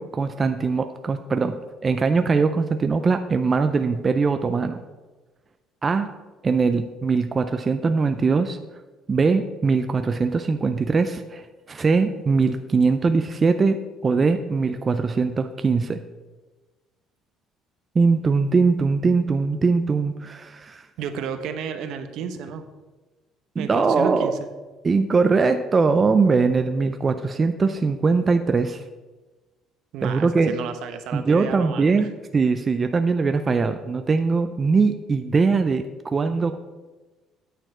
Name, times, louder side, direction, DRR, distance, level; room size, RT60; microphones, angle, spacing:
voice 1, 0.0-1.6 1.8-4.8 5.8-6.1 6.4-8.6 9.1-11.4 11.7-13.8 14.0-16.0 18.0-20.9 23.6-24.4 24.8-28.8 30.0-30.6 31.1-36.6, right 4 dB, 25° right, 8 dB, 0.4 m, -21 dB
voice 2, 21.0-22.7 23.6-24.5 29.9-32.1, right 7 dB, 70° right, 8 dB, 0.9 m, -32 dB
9.1 x 6.6 x 4.8 m, 1.2 s
cardioid pair, 145°, 0 cm